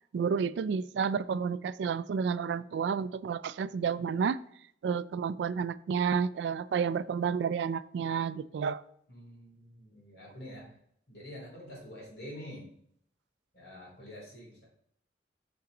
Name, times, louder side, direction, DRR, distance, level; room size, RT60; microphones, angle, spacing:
voice 1, 0.1-4.4 4.8-8.8, right 6 dB, 80° right, 16 dB, 0.3 m, -30 dB
voice 2, 9.1-10.7 11.1-12.7 13.5-14.6, equal, 65° left, -3 dB, 2.9 m, -47 dB
6.1 x 5.7 x 3.8 m, 0.69 s
head